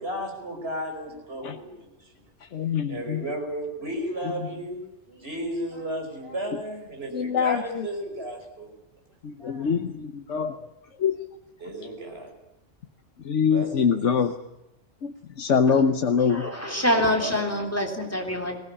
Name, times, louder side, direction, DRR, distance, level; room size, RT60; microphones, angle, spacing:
voice 1, 0.0-2.2 2.9-8.7 9.4-9.7 11.6-12.3 13.5-14.1 17.0-17.4, right 1 dB, 55° right, 2 dB, 5.7 m, -34 dB
voice 2, 2.5-3.2 7.1-7.9 9.2-10.6 11.0-11.2 13.2-14.3 15.0-16.5, left 6 dB, 80° left, 7 dB, 1.4 m, -24 dB
voice 3, 16.1-18.6, equal, 10° left, 2 dB, 3.5 m, -26 dB
21.0 x 18.5 x 9.9 m, 0.91 s
omnidirectional pair, 1.2 m